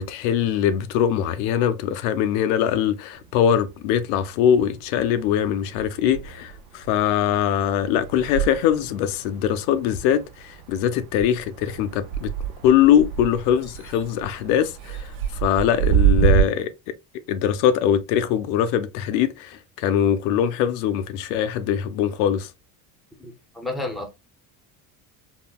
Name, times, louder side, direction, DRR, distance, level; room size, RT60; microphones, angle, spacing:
voice 1, 0.0-12.3 12.6-15.1 15.4-16.9 17.3-22.5, left 9 dB, 85° left, 0.5 m, -22 dB
sound 1, 3.2-4.4 4.7-16.4, right 10 dB, 80° right, 0.8 m, -28 dB
voice 2, 23.2-24.1, left 2 dB, ahead, 0.6 m, -31 dB
3.6 x 2.1 x 2.3 m
cardioid pair, 130°, 40 cm